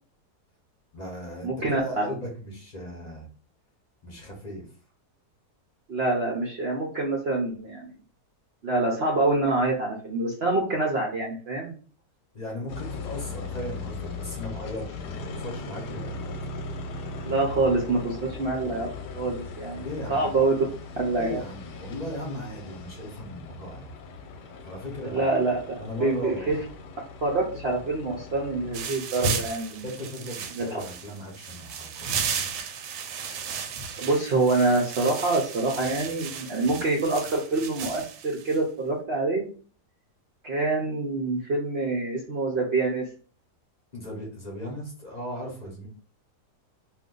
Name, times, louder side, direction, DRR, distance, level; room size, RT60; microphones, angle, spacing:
voice 1, 0.9-3.3 4.0-4.7 12.3-16.3 19.8-20.3 21.2-23.9 24.4-25.3 25.8-26.6 29.7-32.5 36.6-36.8 43.9-45.9, left 1 dB, 35° left, -3 dB, 0.7 m, -37 dB
voice 2, 1.4-2.1 5.9-7.9 8.6-11.7 17.2-18.9 19.1-20.6 21.0-21.4 25.0-25.6 26.0-26.6 27.2-29.8 30.5-30.8 34.0-39.5 40.4-43.1, right 3 dB, 60° right, -1 dB, 0.6 m, -26 dB
sound 1, 12.7-28.9, left 3 dB, 85° left, 1.2 m, -39 dB
sound 2, 28.7-38.6, right 5 dB, 85° right, 1.2 m, -34 dB
2.5 x 2.5 x 3.7 m, 0.40 s
omnidirectional pair, 1.8 m